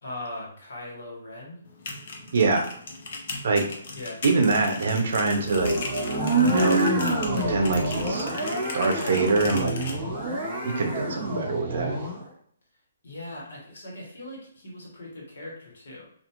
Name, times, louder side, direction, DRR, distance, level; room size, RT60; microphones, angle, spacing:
voice 1, 0.0-1.6 3.9-4.2 8.4-8.6 13.0-16.0, left 1 dB, 70° left, -3 dB, 1.2 m, -40 dB
sound 1, 1.7-10.0, left 3 dB, 45° left, 0.5 m, -38 dB
voice 2, 2.3-2.7 3.4-3.7 4.2-5.8 6.4-7.1 7.4-8.3 8.5-9.8 10.6-12.0, right 3 dB, 55° right, 3 dB, 0.6 m, -24 dB
sound 2, 5.4-12.2, right 2 dB, 20° right, 0.7 m, -27 dB
2.4 x 2.3 x 2.9 m, 0.63 s
hypercardioid pair, 175°, 0 cm